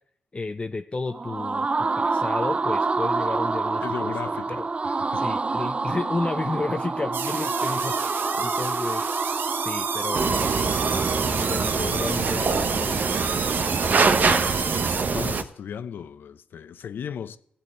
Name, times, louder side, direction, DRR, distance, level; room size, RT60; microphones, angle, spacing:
voice 1, 0.3-4.1 4.5-4.7 5.1-9.2 9.6-13.0, left 3 dB, 30° left, 0.7 m, -32 dB
sound 1, 1.1-11.9, right 3 dB, 35° right, 0.4 m, -27 dB
voice 2, 3.8-4.6 5.0-5.2 14.1-17.4, left 8 dB, 75° left, 0.7 m, -36 dB
sound 2, 7.1-15.0, right 6 dB, 75° right, 0.9 m, -31 dB
sound 3, 10.1-15.4, right 4 dB, 55° right, 1.0 m, -24 dB
14.5 x 8.7 x 4.4 m
supercardioid pair, 50°, 4 cm